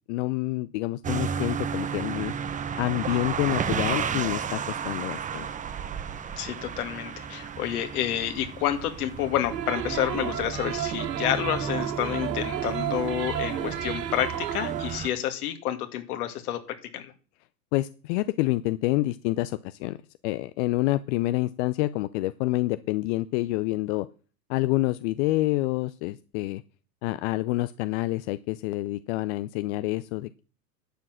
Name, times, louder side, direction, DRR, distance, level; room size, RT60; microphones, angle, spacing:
voice 1, 0.1-2.3 2.8-5.5 17.7-20.0 20.2-24.1 24.5-26.6 27.0-30.4, left 18 dB, 45° left, 14 dB, 0.6 m, -27 dB
sound 1, 1.0-15.1, right 7 dB, 15° right, 0.7 m, -33 dB
voice 2, 6.4-16.6 16.9-17.1, left 11 dB, 60° left, 8 dB, 2.2 m, -29 dB
sound 2, 9.5-15.0, right 10 dB, 80° right, 1.2 m, -32 dB
11.5 x 7.6 x 6.2 m, 0.37 s
hypercardioid pair, 95°, 50 cm